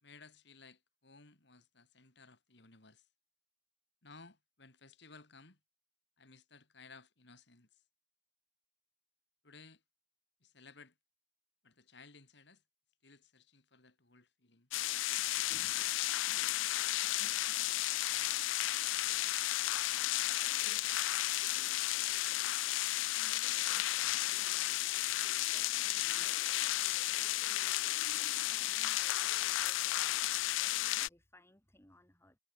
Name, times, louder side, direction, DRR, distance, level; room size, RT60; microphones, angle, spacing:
voice 1, 0.0-3.0 4.0-5.6 6.2-7.8 9.4-9.8 10.4-10.9 11.6-12.6 13.0-14.7 21.1-21.8, left 4 dB, 65° left, 3.2 m, -58 dB
sound 1, 14.7-31.1, left 16 dB, 90° left, 0.4 m, -33 dB
voice 2, 23.1-27.6 28.2-32.4, left 1 dB, 15° left, 3.7 m, -64 dB
head